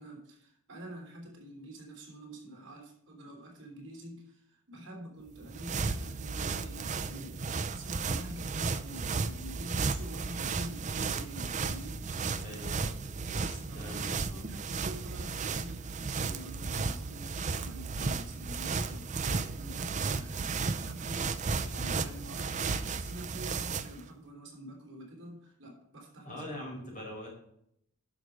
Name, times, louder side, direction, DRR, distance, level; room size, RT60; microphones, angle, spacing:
voice 1, 0.0-12.0 13.3-26.9, right 1 dB, 55° right, 0 dB, 3.4 m, -47 dB
sound 1, 5.3-24.0, right 4 dB, 35° right, 0.5 m, -34 dB
voice 2, 12.4-12.9 13.3-14.5 26.2-27.3, left 1 dB, 35° left, -2 dB, 4.6 m, -43 dB
11.0 x 6.2 x 5.1 m, 0.72 s
head